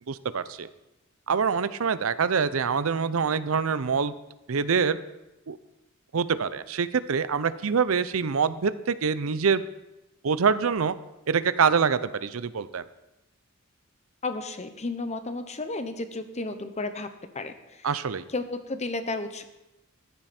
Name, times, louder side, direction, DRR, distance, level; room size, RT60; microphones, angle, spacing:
voice 1, 0.1-0.7 1.3-4.1 4.5-5.0 5.5-5.6 6.1-9.6 10.2-10.9 11.3-12.8 17.8-18.2, right 6 dB, 85° right, 14 dB, 0.6 m, -25 dB
voice 2, 14.2-17.1 17.3-17.9 18.3-19.4, left 2 dB, 35° left, 9 dB, 0.9 m, -33 dB
14.0 x 11.0 x 4.4 m, 0.95 s
head